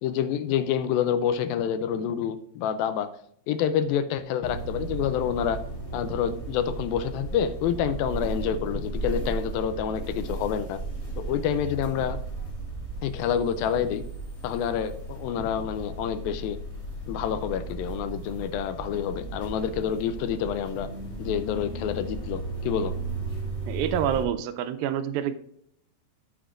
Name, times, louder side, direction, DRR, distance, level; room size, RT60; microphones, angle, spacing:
voice 1, 0.0-3.1 3.5-5.6 5.9-10.8 11.2-12.2 13.0-14.0 14.4-16.6 17.1-20.9 21.2-22.9, left 8 dB, 85° left, 11 dB, 2.3 m, -28 dB
sound 1, 4.4-24.2, right 2 dB, 20° left, 2.5 m, -35 dB
voice 2, 23.7-25.3, right 9 dB, 85° right, 11 dB, 2.4 m, -27 dB
13.5 x 7.1 x 2.5 m, 0.69 s
omnidirectional pair, 4.2 m